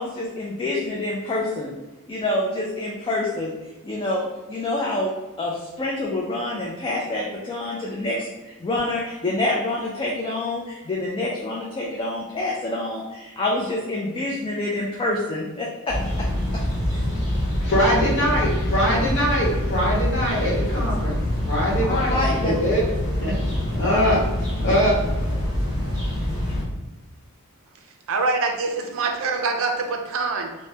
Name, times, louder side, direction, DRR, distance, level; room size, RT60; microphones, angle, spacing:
voice 1, 0.0-1.7 2.1-3.5 3.8-5.1 5.4-16.0 22.1-22.5, left 2 dB, 20° left, -4 dB, 0.3 m, -27 dB
sound 1, 15.9-26.6, left 1 dB, 20° right, 1.4 m, -25 dB
voice 2, 17.6-21.1 21.5-22.9 23.2-23.4 23.7-24.9, equal, 55° left, -5 dB, 1.0 m, -22 dB
voice 3, 28.1-30.6, right 4 dB, 65° right, 4 dB, 0.4 m, -24 dB
2.7 x 2.1 x 3.2 m, 1.1 s
head